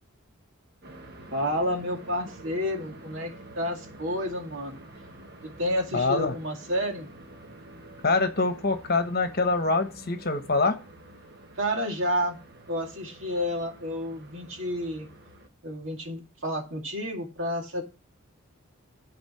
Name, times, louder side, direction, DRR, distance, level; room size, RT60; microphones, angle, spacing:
sound 1, 0.8-15.5, right 1 dB, 50° right, 1.3 m, -48 dB
voice 1, 1.3-4.8 5.4-7.1 11.6-12.4 12.7-15.1 15.6-17.8, equal, 65° right, 2 dB, 2.3 m, -30 dB
voice 2, 5.9-6.3 8.0-10.8, left 3 dB, 45° left, 8 dB, 1.1 m, -25 dB
11.5 x 4.3 x 5.7 m, 0.30 s
head